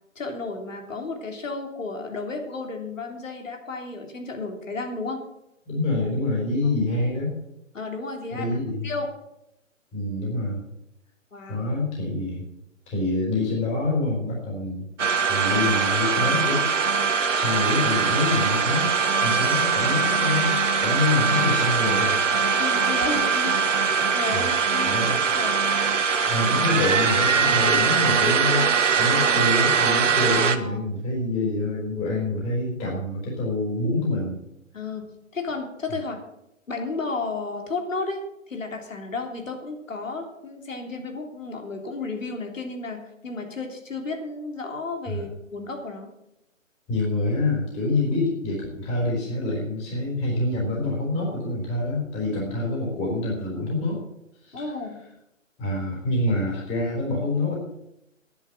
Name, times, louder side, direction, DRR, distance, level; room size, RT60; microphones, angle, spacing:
voice 1, 0.1-5.2 7.7-8.6 8.8-9.1 11.3-11.7 22.6-23.6 24.1-25.6 30.5-30.8 34.7-36.2 36.7-46.1 54.5-55.0, left 3 dB, 70° left, 3 dB, 3.4 m, -33 dB
voice 2, 5.7-7.3 8.3-8.9 9.9-10.6 11.5-12.4 12.9-14.9 15.3-16.7 17.3-18.9 19.2-20.5 20.8-22.6 24.3-24.5 24.9-25.2 26.3-34.4 45.1-45.2 46.9-54.0 54.4-54.7 55.6-57.5, left 2 dB, 15° left, -3 dB, 4.0 m, -26 dB
sound 1, 15.0-30.6, right 5 dB, 65° right, 1.4 m, -22 dB
11.5 x 10.5 x 7.4 m, 0.85 s
figure-of-eight pair, 145°, 40 cm